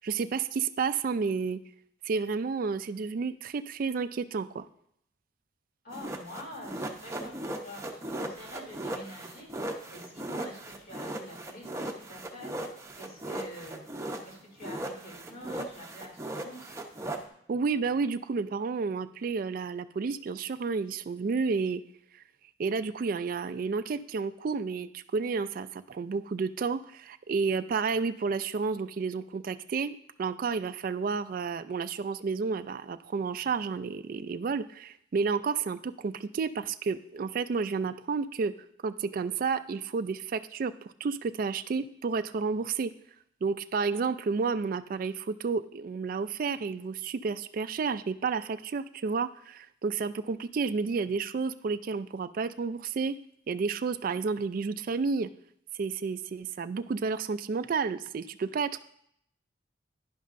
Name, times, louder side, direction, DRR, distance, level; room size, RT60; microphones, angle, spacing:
voice 1, 0.0-1.6 2.0-4.7 17.5-21.8 22.6-38.5 38.8-40.7 41.0-42.9 43.4-53.2 53.5-55.3 55.8-58.8, right 5 dB, 50° right, 11 dB, 0.3 m, -31 dB
voice 2, 5.8-9.5 9.9-12.5 12.9-13.8 14.2-16.7, equal, 50° left, -2 dB, 3.0 m, -46 dB
sound 1, 5.9-14.3 14.6-17.2, right 1 dB, 15° right, 0.7 m, -37 dB
10.5 x 10.5 x 2.5 m, 0.70 s
head